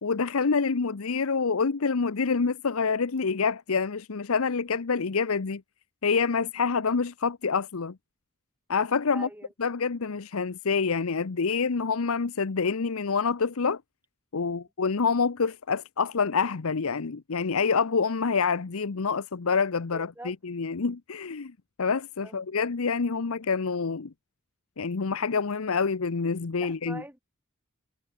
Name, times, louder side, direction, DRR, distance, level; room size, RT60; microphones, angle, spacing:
voice 1, 0.0-5.6 6.0-8.0 8.7-9.3 9.6-13.8 14.3-21.5 21.8-24.1 24.8-27.0, left 5 dB, 80° left, 0.8 m, -27 dB
voice 2, 9.1-9.5 19.9-20.4 22.2-22.4 26.6-27.2, right 1 dB, 10° right, 2.4 m, -43 dB
head